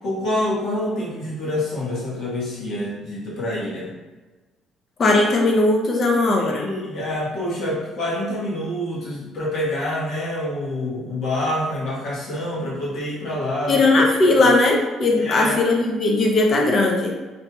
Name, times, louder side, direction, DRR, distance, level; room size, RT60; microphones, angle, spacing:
voice 1, 0.0-3.9 6.4-13.8 14.4-14.6 15.1-15.6, left 1 dB, 65° left, -5 dB, 1.0 m, -27 dB
voice 2, 5.0-6.7 13.7-17.1, left 2 dB, 45° left, 1 dB, 0.6 m, -18 dB
2.9 x 2.6 x 2.2 m, 1.2 s
cardioid pair, 100°, 0 cm